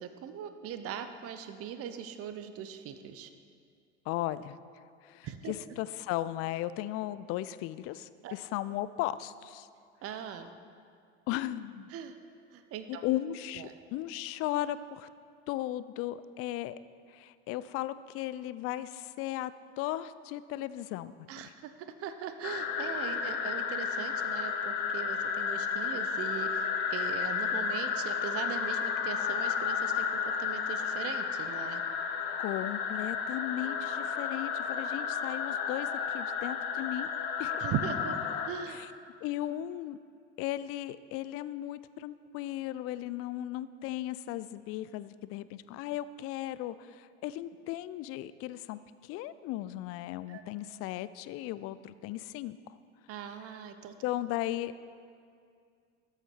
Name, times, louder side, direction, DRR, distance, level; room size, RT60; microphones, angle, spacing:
voice 1, 0.0-3.3 5.2-5.5 8.2-8.3 10.0-10.5 11.9-12.2 12.5-13.0 13.5-13.7 21.3-21.7 22.0-31.8 37.6-38.2 38.5-38.8 50.3-50.4 53.1-53.9, right 8 dB, 40° right, 9 dB, 0.8 m, -40 dB
voice 2, 4.1-4.6 5.0-9.7 11.3-11.9 12.9-15.1 15.5-16.8 17.1-21.1 32.4-37.1 37.4-37.6 38.7-38.9 39.2-40.0 40.4-52.6 54.0-54.8, left 14 dB, 40° left, 16 dB, 0.4 m, -36 dB
sound 1, 22.4-38.5, left 6 dB, 60° left, 1.0 m, -32 dB
13.0 x 8.2 x 4.6 m, 2.3 s
figure-of-eight pair, 75°, 36 cm